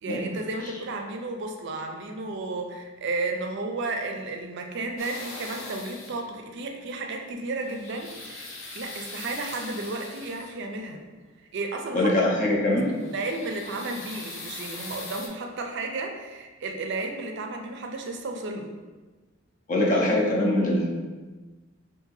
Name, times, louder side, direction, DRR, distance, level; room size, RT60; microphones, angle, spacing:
voice 1, 0.0-8.5 8.7-11.0 11.5-12.1 13.1-18.7, right 2 dB, 60° right, 3 dB, 0.4 m, -33 dB
sound 1, 5.0-6.3 7.4-10.7 12.7-15.3, left 3 dB, 80° left, 0.7 m, -41 dB
voice 2, 11.9-12.9 19.7-20.9, left 1 dB, 40° left, -2 dB, 0.5 m, -22 dB
2.7 x 2.6 x 3.8 m, 1.3 s
head